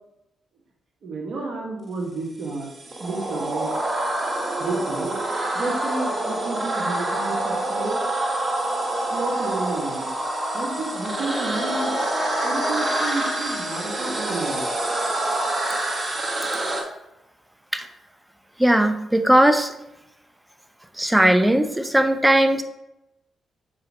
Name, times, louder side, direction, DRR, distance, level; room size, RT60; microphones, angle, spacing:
voice 1, 1.0-2.7 3.0-3.8 4.6-5.2 5.5-8.0 9.1-10.1 10.5-11.9 12.4-14.7, right 3 dB, 60° right, -1 dB, 1.8 m, -31 dB
sound 1, 2.5-16.8, right 1 dB, 40° right, 1.3 m, -26 dB
Brass instrument, 10.1-14.6, left 6 dB, 65° left, 0.5 m, -37 dB
voice 2, 18.6-19.7 21.0-22.6, right 1 dB, 10° right, 8 dB, 0.7 m, -18 dB
6.6 x 4.7 x 3.1 m, 0.88 s
hypercardioid pair, 45°, 0 cm